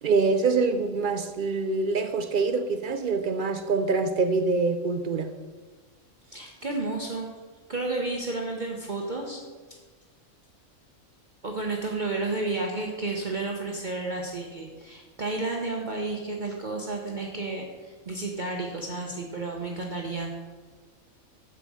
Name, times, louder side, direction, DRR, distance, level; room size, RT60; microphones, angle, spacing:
voice 1, 0.0-5.3, right 4 dB, 65° right, 0.5 m, -25 dB
voice 2, 6.3-7.3 7.7-9.4 9.7-9.8 11.4-20.3, right 3 dB, 40° right, 1.0 m, -31 dB
9.0 x 7.3 x 4.8 m
omnidirectional pair, 1.4 m